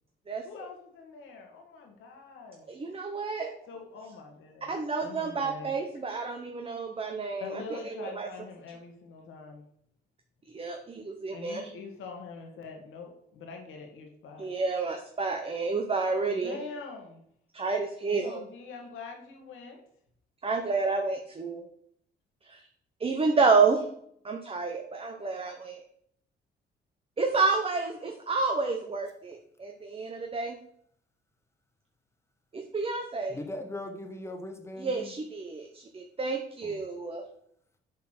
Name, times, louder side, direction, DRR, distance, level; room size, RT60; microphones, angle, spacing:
voice 1, 0.4-2.7 3.7-4.7 5.0-5.7 7.4-9.7 11.3-14.5 16.2-17.2 18.2-19.8, left 4 dB, 85° left, 3 dB, 2.0 m, -44 dB
voice 2, 2.7-3.6 4.7-8.3 10.5-11.7 14.4-16.6 17.5-18.4 20.4-21.6 22.4-22.7 23.0-23.9 24.2-25.8 27.2-30.6 32.5-33.4 34.8-37.2, right 4 dB, 30° right, 3 dB, 1.0 m, -29 dB
voice 3, 33.3-35.1 36.6-36.8, left 1 dB, 15° left, 4 dB, 1.4 m, -39 dB
7.3 x 4.3 x 5.9 m, 0.67 s
cardioid pair, 90°, 20 cm